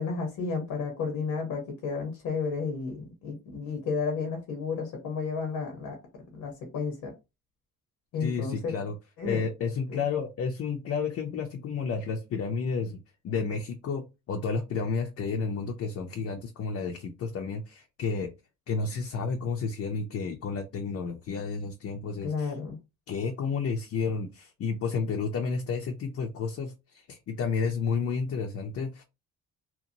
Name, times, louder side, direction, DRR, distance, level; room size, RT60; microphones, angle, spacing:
voice 1, 0.0-6.0 6.3-7.1 8.1-8.7 9.2-9.5 9.9-10.0 22.2-22.8, left 4 dB, 90° left, 0.9 m, -32 dB
voice 2, 8.2-9.0 9.2-18.3 18.7-22.5 23.1-29.0, left 5 dB, 55° left, 0.5 m, -31 dB
2.9 x 2.1 x 2.6 m
cardioid pair, 90°, 30 cm